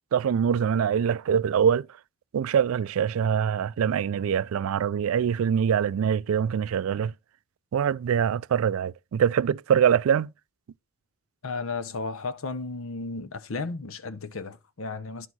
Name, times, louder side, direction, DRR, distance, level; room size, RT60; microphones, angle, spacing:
voice 1, 0.1-1.9 2.3-7.1 7.7-10.3, right 8 dB, 75° right, 0.3 m, -24 dB
voice 2, 11.4-15.3, left 3 dB, 70° left, 0.8 m, -34 dB
10.5 x 4.6 x 4.0 m
head